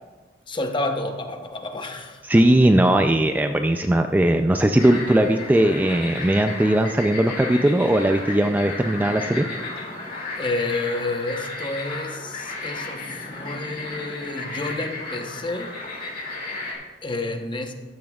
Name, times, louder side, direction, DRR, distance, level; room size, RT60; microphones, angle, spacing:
voice 1, 0.5-2.2 10.3-15.7 17.0-17.7, left 2 dB, 30° left, 5 dB, 0.9 m, -29 dB
voice 2, 2.2-9.5, right 1 dB, 10° right, 6 dB, 0.3 m, -19 dB
sound 1, 4.8-16.7, left 2 dB, 55° left, 2.4 m, -34 dB
14.0 x 10.5 x 2.3 m, 1.3 s
head